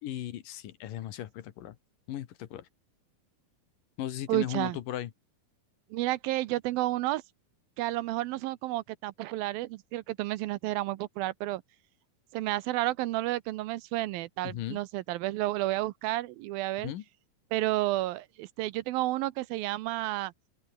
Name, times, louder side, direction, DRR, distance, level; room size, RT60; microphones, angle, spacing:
voice 1, 0.0-1.8 2.1-2.7 4.0-5.1 14.4-14.8 16.8-17.0, left 12 dB, 65° left, 2.7 m, -37 dB
voice 2, 4.3-4.8 5.9-7.2 7.8-11.6 12.3-16.9 17.5-20.3, right 17 dB, 80° right, 2.4 m, -31 dB
open air
omnidirectional pair, 4.4 m